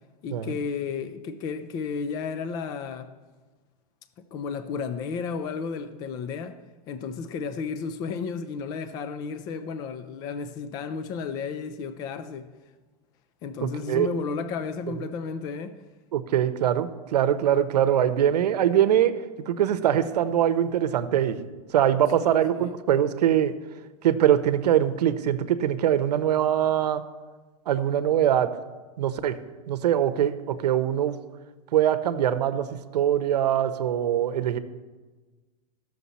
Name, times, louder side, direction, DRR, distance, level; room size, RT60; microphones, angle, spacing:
voice 1, 0.2-3.1 4.2-12.5 13.4-15.8 22.2-22.8, left 5 dB, 20° left, 0.4 m, -33 dB
voice 2, 13.6-14.1 14.9-15.0 16.1-19.1 19.5-21.4 21.7-23.5 24.0-27.0 27.7-28.5 29.0-29.4 29.7-31.2 31.7-32.7 32.9-34.6, right 10 dB, 85° right, 0.8 m, -23 dB
15.5 x 6.5 x 4.1 m
supercardioid pair, 165°, 20 cm